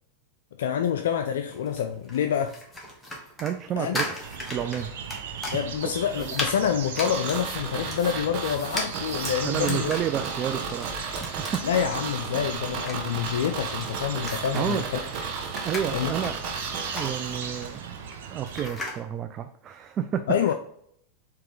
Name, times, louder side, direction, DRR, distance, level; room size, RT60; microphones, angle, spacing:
voice 1, 0.6-2.6 3.8-4.0 5.5-9.9 11.6-15.0 15.4-15.7 15.9-16.3 20.3-20.5, left 8 dB, 75° left, 0.3 m, -27 dB
sound 1, 1.5-19.0, left 1 dB, 10° left, 1.4 m, -38 dB
voice 2, 3.4-4.2 4.5-4.9 5.5-5.6 6.2-6.4 9.4-11.6 14.5-14.9 15.6-16.4 16.9-18.0 18.3-20.5, right 9 dB, 35° right, 0.4 m, -30 dB
sound 2, 4.2-18.7, right 7 dB, 75° right, 0.7 m, -38 dB
sound 3, 7.0-18.0 18.3-18.4, right 5 dB, 50° right, 1.1 m, -34 dB
4.5 x 3.0 x 3.8 m
hypercardioid pair, 105°, 0 cm